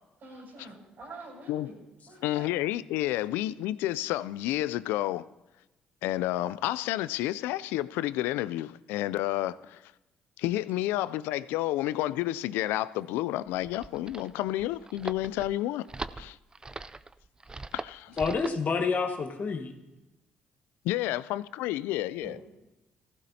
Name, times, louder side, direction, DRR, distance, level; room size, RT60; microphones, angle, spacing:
voice 1, 0.2-1.7 2.1-2.5 18.1-18.4 22.2-22.4, right 2 dB, 60° right, 5.8 m, -46 dB
voice 2, 2.2-5.3 6.0-9.8 10.4-15.9 16.2-16.4 17.7-18.1 20.8-22.4, left 15 dB, 80° left, 0.3 m, -30 dB
sound 1, 13.5-18.6, right 3 dB, 20° right, 0.4 m, -41 dB
voice 3, 18.2-19.7, left 5 dB, 50° left, 1.3 m, -28 dB
16.5 x 15.0 x 2.8 m
supercardioid pair, 60°, 4 cm